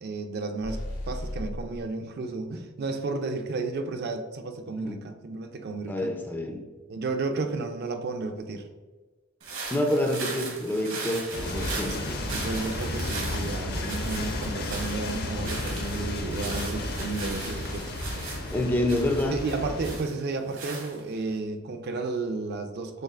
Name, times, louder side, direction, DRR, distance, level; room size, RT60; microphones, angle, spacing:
voice 1, 0.0-6.1 6.9-8.7 12.0-17.9 18.2-18.3 19.3-23.0, right 3 dB, 50° right, 6 dB, 0.4 m, -33 dB
sound 1, 0.6-1.8, left 1 dB, 85° left, 1.3 m, -35 dB
voice 2, 5.9-6.7 9.7-11.9 18.5-19.4, left 1 dB, 10° left, 4 dB, 0.3 m, -27 dB
sound 2, 9.4-21.3, right 3 dB, 70° right, 1.1 m, -39 dB
sound 3, 11.3-20.0, left 2 dB, 55° left, 0.6 m, -33 dB
6.4 x 2.4 x 2.4 m, 1.3 s
head